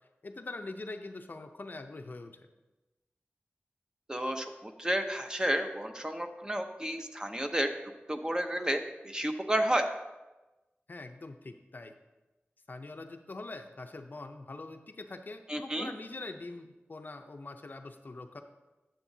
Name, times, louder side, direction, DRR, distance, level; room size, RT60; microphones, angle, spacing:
voice 1, 0.2-2.4 10.9-11.9 12.7-18.4, left 2 dB, 50° left, 7 dB, 0.5 m, -43 dB
voice 2, 4.1-7.7 8.1-9.9 15.5-15.9, right 1 dB, 20° right, 5 dB, 0.6 m, -31 dB
10.0 x 7.3 x 2.7 m, 1.1 s
wide cardioid pair, 90°, 4 cm